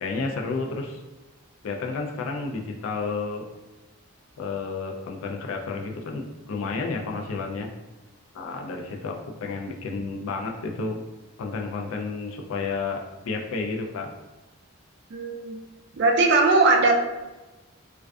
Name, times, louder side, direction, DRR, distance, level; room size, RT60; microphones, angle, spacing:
voice 1, 0.0-1.0 1.6-3.4 4.4-7.7 8.3-11.0 11.4-14.1, left 4 dB, 75° left, 2 dB, 0.3 m, -31 dB
voice 2, 15.1-15.6 16.0-17.0, right 3 dB, 50° right, 2 dB, 0.3 m, -19 dB
2.4 x 2.3 x 2.2 m, 1.1 s
head